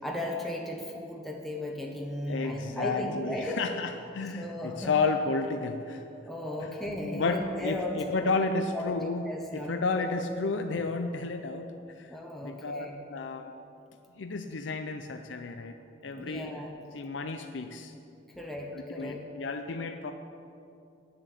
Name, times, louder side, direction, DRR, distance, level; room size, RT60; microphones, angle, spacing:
voice 1, 0.0-3.6 4.4-4.9 6.3-8.3 8.7-10.1 12.1-13.0 16.1-16.7 18.4-19.2, left 1 dB, ahead, -1 dB, 0.9 m, -36 dB
voice 2, 2.3-6.0 6.6-6.7 7.1-9.2 9.5-11.7 12.0-12.1 12.4-13.5 14.2-15.7 16.0-16.6 16.9-17.9 19.0-20.1, left 3 dB, 75° left, 6 dB, 0.5 m, -32 dB
10.0 x 7.5 x 8.3 m, 2.7 s
head